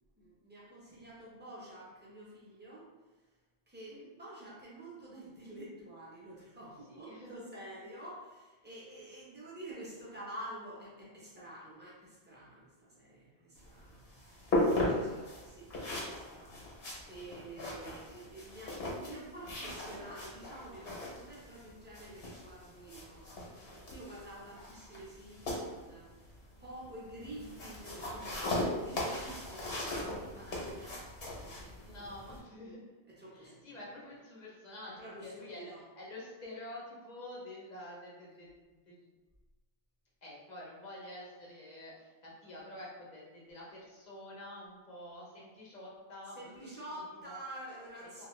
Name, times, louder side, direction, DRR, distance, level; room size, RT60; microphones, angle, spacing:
voice 1, 0.2-2.9 3.7-31.0 31.4-32.1 33.1-33.7 35.0-35.8 46.3-48.3, right 1 dB, 10° right, -7 dB, 0.6 m, -49 dB
voice 2, 6.9-7.7 14.4-14.8 15.1-15.5 27.0-27.4 31.8-32.8 33.3-39.1 40.2-47.4 48.0-48.3, left 1 dB, 45° left, -5 dB, 0.8 m, -49 dB
sound 1, 13.5-32.4, left 1 dB, 65° left, 1.1 m, -38 dB
2.8 x 2.3 x 3.0 m, 1.2 s
omnidirectional pair, 1.2 m